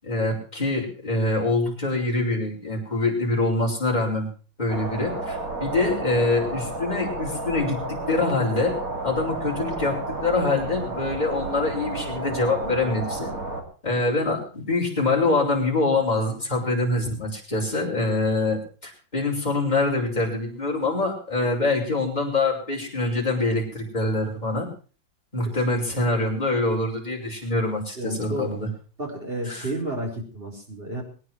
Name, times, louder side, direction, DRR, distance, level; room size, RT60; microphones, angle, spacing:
voice 1, 0.0-4.3 4.6-8.7 9.0-13.3 13.8-24.7 25.3-28.7 29.5-29.7, left 2 dB, 20° left, -3 dB, 5.7 m, -25 dB
sound 1, 4.7-13.6, right 2 dB, 45° right, 3.4 m, -31 dB
voice 2, 28.0-28.5 29.0-31.0, right 1 dB, 30° right, 1 dB, 4.7 m, -31 dB
23.5 x 9.8 x 4.7 m, 0.38 s
omnidirectional pair, 2.0 m